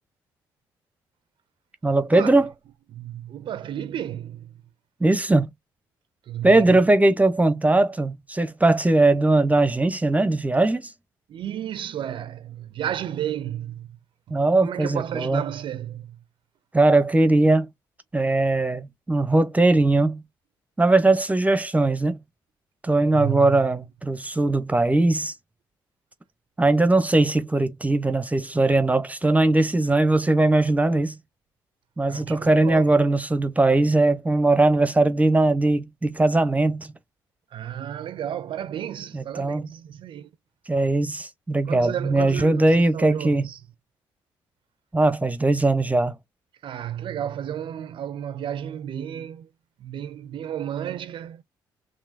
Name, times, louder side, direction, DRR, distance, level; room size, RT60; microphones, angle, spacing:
voice 1, 1.8-2.5 5.0-5.5 6.4-10.9 14.3-15.4 16.7-17.7 18.1-20.2 20.8-22.2 22.8-25.3 26.6-31.1 32.0-36.9 39.1-39.6 40.7-43.5 44.9-46.2, right 2 dB, 15° right, 0.8 m, -20 dB
voice 2, 2.9-4.5 6.2-6.8 11.3-14.0 14.6-16.2 23.0-23.7 32.1-33.0 37.5-40.3 41.7-43.6 46.6-49.5 49.8-51.4, right 10 dB, 60° right, 0.5 m, -32 dB
4.8 x 3.1 x 2.6 m
hypercardioid pair, 55°, 10 cm